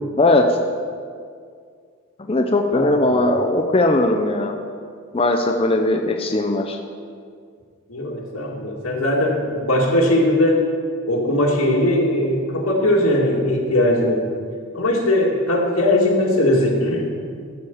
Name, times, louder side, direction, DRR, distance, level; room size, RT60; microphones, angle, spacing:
voice 1, 0.2-0.5 2.2-4.5 5.1-6.8, left 2 dB, 25° left, 3 dB, 0.6 m, -19 dB
voice 2, 2.7-3.4 7.9-10.7 11.0-14.3 14.7-17.1, left 1 dB, 85° left, -1 dB, 2.0 m, -19 dB
14.0 x 5.1 x 7.0 m, 2.1 s
head